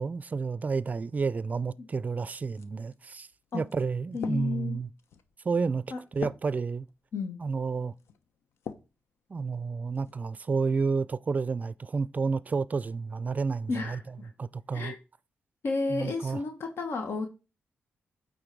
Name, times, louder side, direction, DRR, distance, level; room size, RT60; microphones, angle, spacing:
voice 1, 0.0-3.3 3.5-4.9 5.4-5.8 6.1-6.9 7.4-7.9 9.3-14.0 14.4-14.9 15.9-16.4, right 4 dB, 35° right, 0.4 m, -30 dB
sound 1, 2.5-9.0 9.5-10.2, left 7 dB, 85° left, 0.8 m, -45 dB
voice 2, 4.1-4.8 5.9-6.0 7.1-7.4 13.7-14.3 14.7-15.0 15.6-17.3, left 3 dB, 65° left, 1.3 m, -32 dB
9.0 x 4.0 x 4.6 m
cardioid pair, 85°, 4 cm